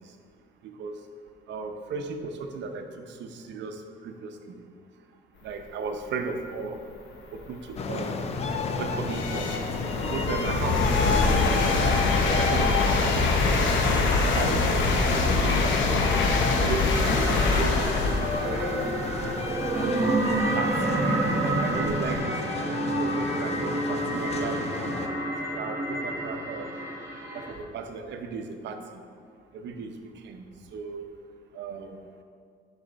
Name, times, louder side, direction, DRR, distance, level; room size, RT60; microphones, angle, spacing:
voice 1, 0.6-1.0 1.5-4.6 5.4-6.8 7.3-8.2 8.8-9.6 10.1-11.4 11.8-12.7 13.0-13.5 14.1-16.0 16.6-19.0 19.5-20.1 20.6-22.4 22.8-24.7 25.4-26.7 27.3-28.8 29.5-29.9 30.2-31.1 31.5-32.0, right 4 dB, 65° right, 6 dB, 0.7 m, -36 dB
sound 1, 6.7-6.8 7.4-22.2, left 3 dB, 70° left, 0.8 m, -25 dB
sound 2, 7.8-25.1, left 4 dB, 35° left, 0.4 m, -32 dB
sound 3, 16.9-27.5, right 2 dB, 15° right, 1.0 m, -29 dB
10.5 x 4.2 x 4.0 m, 2.2 s
cardioid pair, 180°, 20 cm